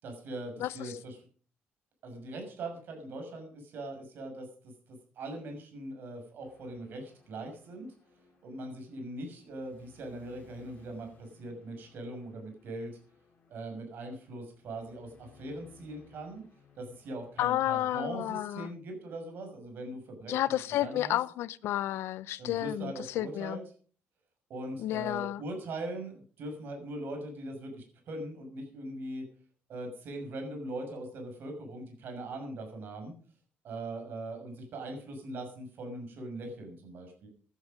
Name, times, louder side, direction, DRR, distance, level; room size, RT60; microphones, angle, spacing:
voice 1, 0.0-1.2 2.0-4.5 4.9-7.9 8.4-12.9 13.5-16.4 16.8-20.4 20.8-21.2 22.4-23.6 24.5-29.2 29.7-33.1 33.6-37.3, right 1 dB, 55° right, 6.3 m, -41 dB
voice 2, 0.6-0.9 17.4-18.7 20.3-23.6 24.8-25.4, left 13 dB, 75° left, 0.6 m, -31 dB
sound 1, 6.4-18.2, left 5 dB, 40° left, 4.6 m, -62 dB
16.5 x 11.0 x 5.3 m
cardioid pair, 170°, 4 cm